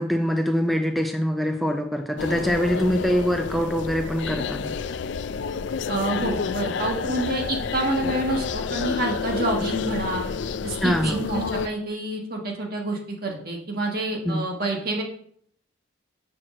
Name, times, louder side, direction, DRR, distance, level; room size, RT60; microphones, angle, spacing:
voice 1, 0.0-4.7 10.8-11.2 14.3-14.4, equal, ahead, 3 dB, 0.4 m, -24 dB
sound 1, 2.2-11.7, left 5 dB, 65° left, 0.4 m, -29 dB
voice 2, 5.9-10.3 10.6-15.0, right 2 dB, 50° right, 1 dB, 1.5 m, -28 dB
6.1 x 4.6 x 6.3 m, 0.65 s
head